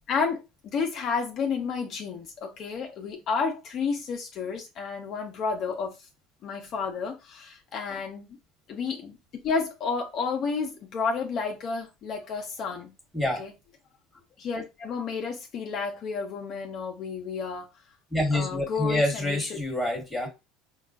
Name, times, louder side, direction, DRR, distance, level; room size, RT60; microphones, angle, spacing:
voice 1, 0.1-6.0 6.4-8.2 8.7-9.1 9.4-12.9 13.4-13.5 14.4-17.7 18.3-19.6, left 5 dB, 45° left, 0.6 m, -31 dB
voice 2, 18.1-20.3, left 1 dB, 5° left, 1.4 m, -27 dB
5.4 x 2.3 x 2.5 m
supercardioid pair, 120°, 0 cm